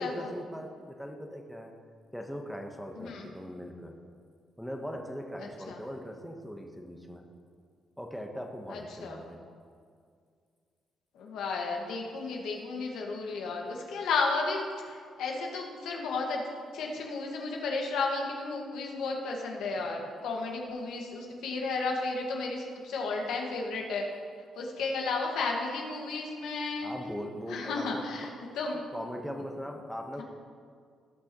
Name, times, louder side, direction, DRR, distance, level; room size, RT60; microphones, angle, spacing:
voice 1, 0.0-1.7 2.1-3.9 4.6-7.3 8.0-9.4 26.8-28.0 28.9-30.2, equal, ahead, 2 dB, 1.0 m, -40 dB
voice 2, 3.0-3.3 5.7-5.8 8.7-9.2 11.1-16.4 16.7-24.1 24.6-26.9 27.5-28.3 28.5-28.9, left 3 dB, 80° left, 0 dB, 1.6 m, -33 dB
17.5 x 6.1 x 3.0 m, 2.1 s
cardioid pair, 90°, 0 cm